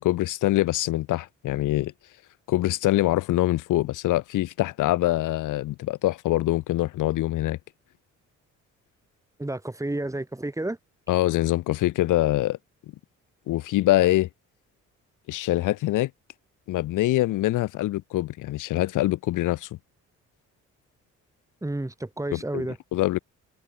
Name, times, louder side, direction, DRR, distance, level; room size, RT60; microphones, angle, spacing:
voice 1, 0.0-1.9 2.5-7.6 11.1-12.6 13.5-14.3 15.3-16.1 16.7-19.7 22.3-22.6 22.9-23.2, left 16 dB, 90° left, 3.0 m, -24 dB
voice 2, 9.4-10.8 21.6-22.8, right 1 dB, 10° right, 5.0 m, -30 dB
cardioid pair, 90°, 30 cm